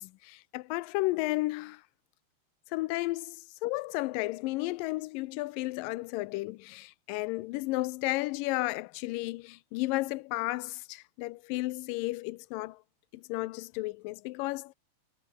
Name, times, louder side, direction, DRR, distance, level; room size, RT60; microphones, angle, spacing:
voice 1, 0.0-1.8 2.7-12.8 13.1-14.7, left 20 dB, 90° left, 2.3 m, -33 dB
omnidirectional pair, 3.9 m